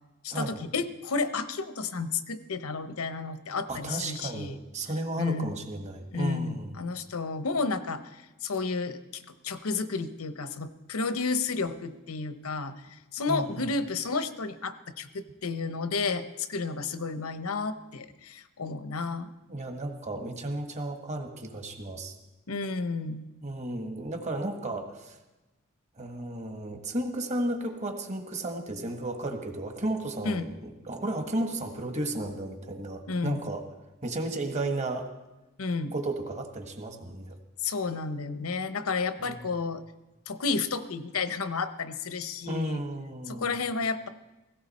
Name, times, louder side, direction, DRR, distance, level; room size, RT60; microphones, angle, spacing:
voice 1, 0.2-4.6 5.2-5.5 6.1-12.7 13.1-19.3 22.5-23.3 30.2-30.5 33.1-33.4 35.6-35.9 37.6-39.8 40.3-42.8 43.3-44.1, left 4 dB, 85° left, 11 dB, 0.9 m, -31 dB
voice 2, 3.7-6.8 13.3-13.7 19.5-22.1 23.4-25.2 26.0-33.6 34.0-35.1 35.9-37.4 39.2-39.4 42.5-43.6, right 1 dB, 35° right, 5 dB, 1.6 m, -33 dB
17.0 x 16.5 x 4.2 m, 1.1 s
head